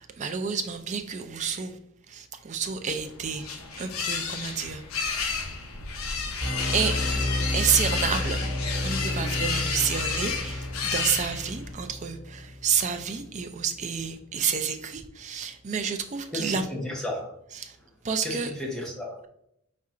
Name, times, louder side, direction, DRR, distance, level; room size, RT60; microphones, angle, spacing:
voice 1, 0.0-1.8 2.1-3.5 3.8-5.5 6.7-7.0 7.5-8.4 8.8-16.7 17.5-17.8 18.0-18.5, right 7 dB, 35° right, 7 dB, 0.4 m, -29 dB
sound 1, 2.9-11.7, left 5 dB, 85° left, 0.6 m, -32 dB
sound 2, 6.4-13.2, left 1 dB, 60° right, 1.1 m, -31 dB
voice 2, 16.3-17.3 18.2-19.2, left 1 dB, 5° left, -3 dB, 0.9 m, -33 dB
4.7 x 4.2 x 2.5 m, 0.76 s
head